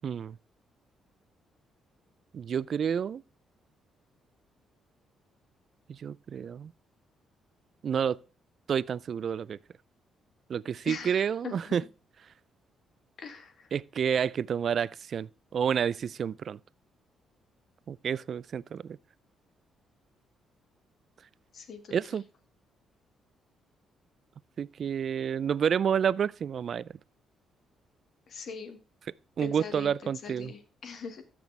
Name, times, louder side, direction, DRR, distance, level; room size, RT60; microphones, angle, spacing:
voice 1, 0.0-0.3 2.3-3.2 5.9-6.7 7.8-8.2 8.7-9.6 10.5-11.8 13.7-16.6 17.9-19.0 21.9-22.2 24.6-26.9 29.4-30.5, right 7 dB, 55° right, 0.3 m, -29 dB
voice 2, 10.8-11.7 13.2-13.7 21.5-21.9 28.3-28.8 29.4-29.9 30.2-31.2, left 5 dB, 60° left, 1.7 m, -41 dB
13.5 x 6.1 x 3.2 m
cardioid pair, 90°, 0 cm